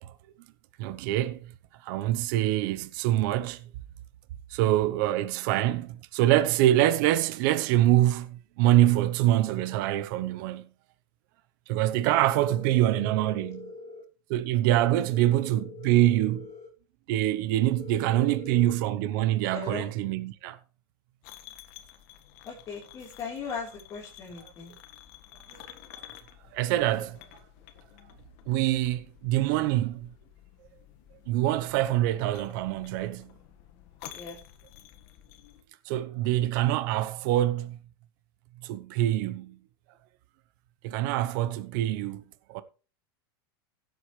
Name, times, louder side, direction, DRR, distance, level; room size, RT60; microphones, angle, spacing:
voice 1, 0.8-1.5 1.8-3.6 4.5-10.7 11.7-13.7 14.3-16.5 17.1-20.6 25.5-25.6 26.5-27.2 28.5-30.1 31.3-33.3 35.8-37.8 38.6-39.6 40.8-42.2 42.5-42.6, right 14 dB, 55° right, 0.9 m, -25 dB
voice 2, 12.5-14.0 15.1-16.7 17.8-18.7 19.5-19.9 22.4-24.8 34.1-34.4, left 5 dB, 25° left, 3.9 m, -40 dB
sound 1, 21.2-35.6, left 12 dB, 50° left, 1.6 m, -51 dB
16.5 x 8.1 x 3.3 m
supercardioid pair, 145°, 13 cm